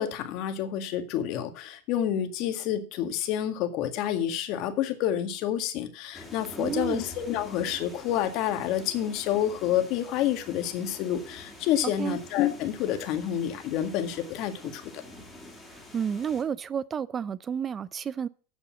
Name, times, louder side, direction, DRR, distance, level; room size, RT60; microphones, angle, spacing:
voice 1, 0.0-14.9, left 10 dB, 50° left, 1.8 m, -29 dB
sound 1, 6.1-16.4, left 1 dB, 5° left, 2.7 m, -47 dB
voice 2, 6.6-7.0 12.0-12.2 15.7-18.3, right 7 dB, 20° right, 0.5 m, -31 dB
8.9 x 6.8 x 7.2 m
supercardioid pair, 135°, 0 cm